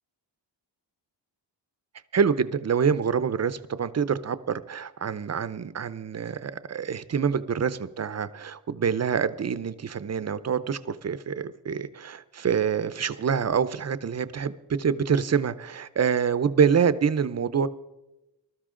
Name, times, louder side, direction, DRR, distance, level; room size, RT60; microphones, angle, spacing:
voice 1, 2.1-17.7, right 7 dB, 35° right, 14 dB, 0.6 m, -26 dB
20.0 x 13.0 x 3.7 m, 1.0 s
wide cardioid pair, 140°, 44 cm